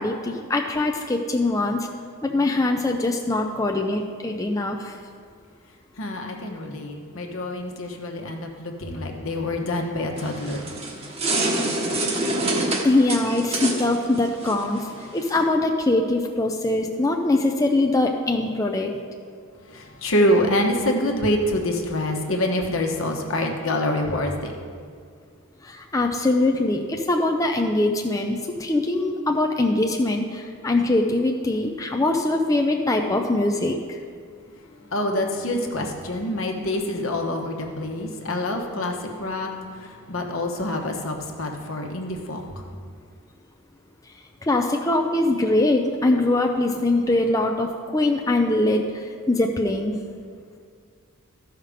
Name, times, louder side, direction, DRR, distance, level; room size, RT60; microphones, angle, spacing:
voice 1, 0.0-1.9 2.2-5.0 12.8-19.0 25.6-34.0 38.5-38.6 44.0-50.0, left 2 dB, 15° left, 2 dB, 0.5 m, -22 dB
voice 2, 6.0-10.6 19.6-24.5 34.7-42.9, left 1 dB, 65° left, 2 dB, 1.2 m, -26 dB
sound 1, 10.2-15.4, right 2 dB, 30° right, 1.1 m, -27 dB
14.0 x 5.8 x 5.0 m, 2.1 s
head